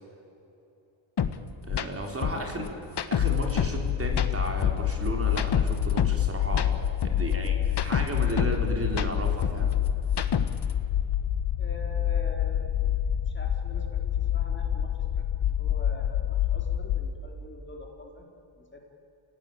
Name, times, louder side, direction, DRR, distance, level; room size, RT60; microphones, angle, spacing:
sound 1, 1.2-1.3 1.7-1.9 2.2-3.8 4.1-6.2 6.5-8.6 8.9-10.7, left 7 dB, 55° left, 1.4 m, -29 dB
voice 1, 1.7-2.6 3.1-6.7 7.0-9.7, right 1 dB, 25° right, 2 dB, 4.0 m, -34 dB
voice 2, 2.2-3.0 11.6-12.7 13.3-18.3 18.6-18.8, left 1 dB, 25° left, 1 dB, 4.3 m, -45 dB
sound 2, 3.2-17.1, left 10 dB, 80° left, 1.2 m, -27 dB
28.0 x 18.0 x 8.7 m, 2.9 s
cardioid pair, 95°, 49 cm